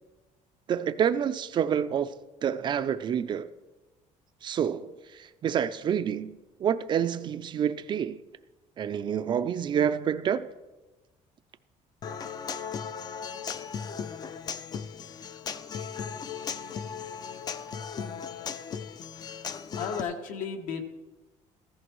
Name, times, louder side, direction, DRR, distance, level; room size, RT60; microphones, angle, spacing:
voice 1, 0.7-2.1 2.4-3.5 4.4-6.3 6.6-8.2 8.8-10.5, right 8 dB, 35° right, 0.4 m, -28 dB
Human voice / Acoustic guitar, 12.0-20.0, left 6 dB, 30° left, 0.4 m, -37 dB
voice 2, 19.8-20.8, left 6 dB, 75° left, 1.5 m, -33 dB
15.0 x 14.0 x 3.1 m
cardioid pair, 155°, 13 cm